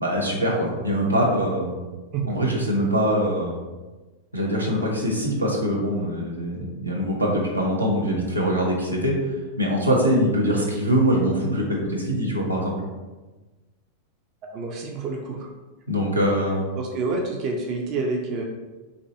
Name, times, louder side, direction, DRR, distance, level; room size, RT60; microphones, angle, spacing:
voice 1, 0.0-1.8 2.3-3.6 4.3-9.2 9.6-12.8 15.9-16.6, equal, 85° right, -2 dB, 0.6 m, -23 dB
voice 2, 14.4-15.5 16.8-18.4, right 3 dB, 40° right, 1 dB, 0.4 m, -28 dB
3.2 x 2.5 x 2.6 m, 1.2 s
figure-of-eight pair, 90°, 0 cm